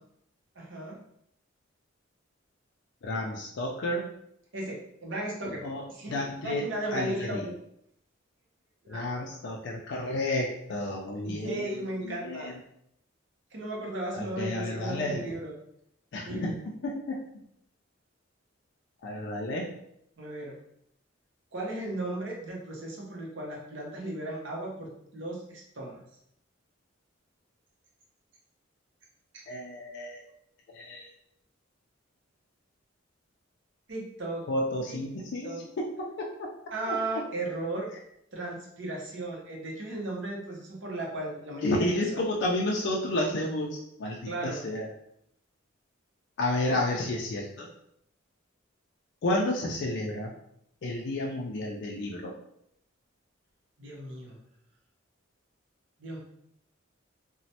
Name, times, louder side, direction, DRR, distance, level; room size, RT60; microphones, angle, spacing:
voice 1, 0.6-1.0 4.5-7.6 8.8-9.1 11.2-12.5 13.5-15.6 16.2-16.5 20.2-20.6 21.5-26.0 29.3-29.4 33.9-34.5 34.9-35.0 35.4-35.6 36.7-37.9 38.3-42.2 44.3-44.7 46.6-46.8 53.8-54.4 56.0-56.2, right 2 dB, 65° right, -2 dB, 0.8 m, -36 dB
voice 2, 3.0-4.0 5.6-6.6 6.9-7.4 8.9-11.7 12.0-12.5 14.1-15.3 16.1-16.5 16.8-17.2 19.0-19.7 29.5-30.2 30.7-31.1 34.5-36.5 36.9-37.0 41.6-44.9 46.4-47.7 49.2-50.3 50.8-52.3, left 1 dB, 60° left, -1 dB, 0.4 m, -31 dB
3.0 x 2.1 x 2.7 m, 0.73 s
head